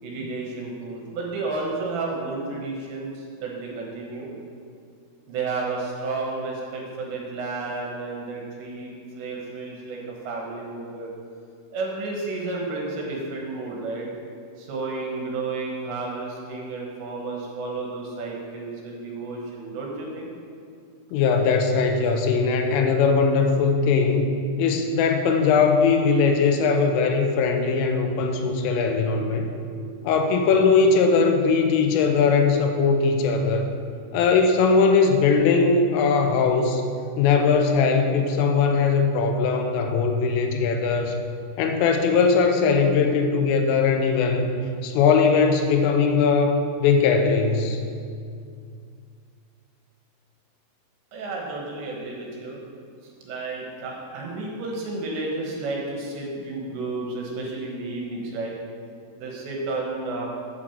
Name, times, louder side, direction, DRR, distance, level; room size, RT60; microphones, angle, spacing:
voice 1, 0.0-4.3 5.3-11.1 11.7-14.1 14.6-20.3 51.1-52.7 53.0-58.5 59.2-60.3, right 3 dB, 70° right, -2 dB, 3.2 m, -32 dB
voice 2, 21.1-24.3 24.6-29.5 30.0-33.7 34.1-36.8 37.2-41.2 41.6-44.5 44.8-47.8, left 5 dB, 85° left, 4 dB, 3.3 m, -20 dB
8.4 x 6.1 x 7.2 m, 2.3 s
omnidirectional pair, 5.7 m